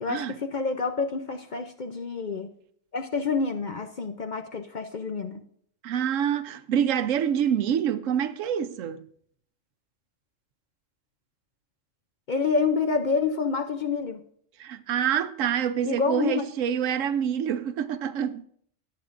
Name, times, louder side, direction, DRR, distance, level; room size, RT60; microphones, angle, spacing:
voice 1, 0.0-2.5 2.9-5.4 12.3-14.2 15.8-16.5, left 4 dB, 50° left, 0.6 m, -28 dB
voice 2, 5.8-9.0 14.6-18.4, right 9 dB, 85° right, 1.0 m, -26 dB
18.5 x 7.7 x 2.5 m
omnidirectional pair, 1.3 m